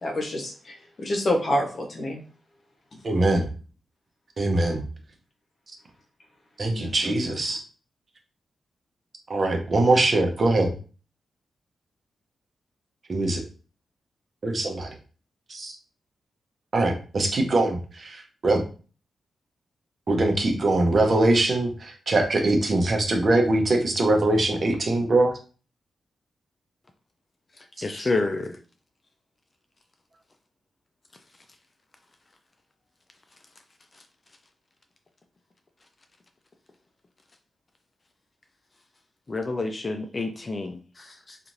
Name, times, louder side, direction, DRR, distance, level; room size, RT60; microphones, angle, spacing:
voice 1, 0.0-2.2 6.7-7.2, left 1 dB, 55° left, 1 dB, 0.9 m, -28 dB
voice 2, 3.0-3.5 4.4-4.8 6.6-7.6 9.3-10.7 13.1-13.4 14.4-14.9 15.5-15.7 16.7-18.6 20.1-25.3, right 2 dB, 50° right, 3 dB, 0.7 m, -22 dB
voice 3, 27.8-28.6 39.3-41.4, left 3 dB, 40° left, 6 dB, 0.4 m, -29 dB
2.9 x 2.4 x 2.6 m, 0.37 s
cardioid pair, 55°, 0 cm